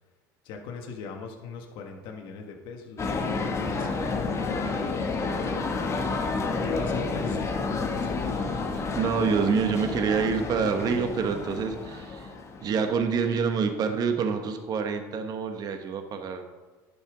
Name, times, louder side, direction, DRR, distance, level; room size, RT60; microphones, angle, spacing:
voice 1, 0.4-5.9 6.6-8.7, left 5 dB, 65° left, 2 dB, 1.4 m, -39 dB
sound 1, 3.0-12.8, left 4 dB, 30° left, 1.3 m, -30 dB
voice 2, 8.9-12.3 12.6-16.4, right 6 dB, 45° right, 6 dB, 1.2 m, -27 dB
11.0 x 5.4 x 4.9 m, 1.3 s
supercardioid pair, 95°, 9 cm